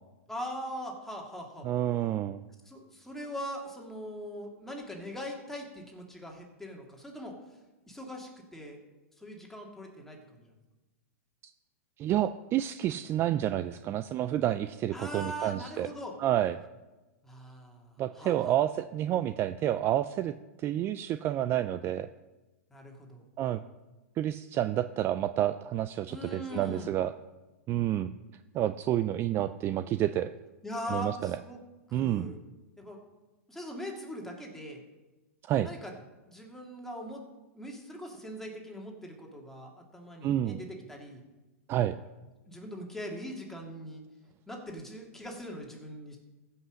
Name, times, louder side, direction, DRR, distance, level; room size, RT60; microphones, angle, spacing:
voice 1, 0.3-1.7 2.7-7.4 7.9-8.8 9.2-10.5 14.9-16.2 17.2-18.5 22.7-23.2 26.1-27.0 30.6-31.6 31.9-32.4 32.8-33.0 33.5-34.8 35.6-35.9 36.3-37.2 37.5-41.2 42.5-44.0 44.5-46.2, equal, 5° left, 0 dB, 2.3 m, -41 dB
voice 2, 1.6-2.4 12.0-15.9 16.2-16.6 18.0-20.3 20.6-22.1 23.4-23.6 24.2-27.1 27.7-28.1 28.5-30.3 30.9-31.4 31.9-32.3 35.4-35.7 40.2-40.6 41.7-42.0, right 12 dB, 30° right, 12 dB, 0.4 m, -29 dB
15.0 x 5.7 x 6.4 m, 1.1 s
hypercardioid pair, 120°, 8 cm